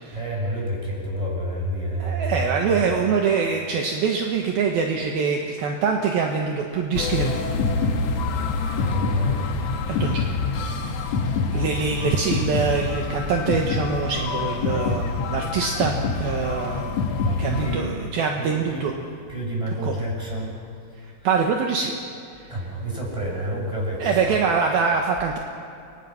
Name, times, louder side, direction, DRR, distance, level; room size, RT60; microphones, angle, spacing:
voice 1, 0.1-2.9 8.8-9.5 10.9-11.1 17.2-18.0 18.4-18.9 19.3-20.5 21.2-21.3 22.5-24.4, equal, 5° right, -3 dB, 7.2 m, -29 dB
voice 2, 2.0-7.6 9.9-10.3 11.5-17.1 17.4-18.9 19.8-19.9 21.2-21.9 22.4-22.5 24.0-25.4, right 5 dB, 70° right, 1 dB, 3.0 m, -24 dB
sound 1, 6.9-17.8, left 4 dB, 65° left, 1.7 m, -26 dB
30.0 x 25.0 x 6.0 m, 2.5 s
omnidirectional pair, 4.9 m